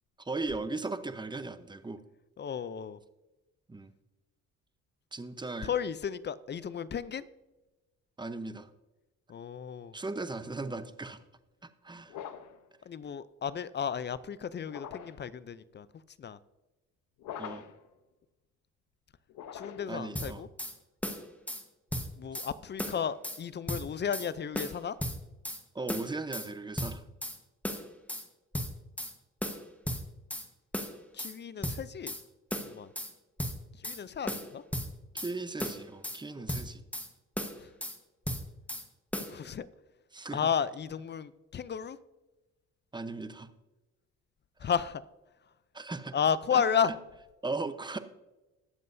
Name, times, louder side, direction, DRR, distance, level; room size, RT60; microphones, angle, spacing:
voice 1, 0.2-2.0 3.7-3.9 5.1-5.7 8.2-8.7 9.9-11.2 11.8-12.2 17.4-17.6 19.9-20.4 22.3-22.4 25.7-27.0 35.1-36.8 40.1-40.5 42.9-43.5 45.7-46.2 46.5-46.6 47.4-48.0, right 3 dB, 15° right, 10 dB, 0.8 m, -37 dB
voice 2, 2.4-3.0 5.6-7.2 9.3-10.0 12.9-15.9 16.2-16.4 19.5-20.5 22.2-25.0 31.1-32.1 32.6-32.9 33.8-34.6 36.4-36.5 37.6-37.7 39.3-39.7 40.3-42.0 44.6-45.0 46.1-46.9, left 7 dB, 35° left, 17 dB, 0.5 m, -33 dB
sound 1, 12.1-12.6 14.6-15.3 17.2-17.9 19.3-20.0, left 9 dB, 80° left, 0.9 m, -43 dB
sound 2, 20.2-20.7 21.0-21.6 21.9-22.5 22.8-23.4 23.7-24.3 24.6-25.6 25.9-26.5 26.8-27.4 27.6-28.3 28.5-29.1 29.4-30.5 30.7-31.3 31.6-32.2 32.5-33.1 33.4-34.0 34.3-35.3 35.6-36.2 36.5-37.1 37.4-38.0 38.3-38.9 39.1-39.3, equal, 5° left, 1.2 m, -35 dB
20.0 x 7.5 x 2.7 m, 1.1 s
cardioid pair, 90°, 30 cm